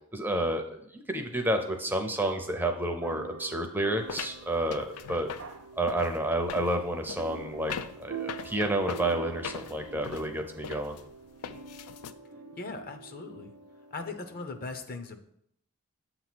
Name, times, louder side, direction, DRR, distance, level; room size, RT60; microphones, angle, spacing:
voice 1, 0.1-5.3 5.8-7.7 8.0-11.0, right 1 dB, 10° right, 5 dB, 0.5 m, -30 dB
sound 1, 1.4-14.6, right 5 dB, 90° right, 0.6 m, -46 dB
sound 2, 4.1-12.1, left 7 dB, 90° left, 0.4 m, -41 dB
voice 2, 12.6-13.5 13.9-15.2, left 3 dB, 40° left, 7 dB, 0.6 m, -39 dB
7.6 x 2.9 x 5.9 m, 0.72 s
head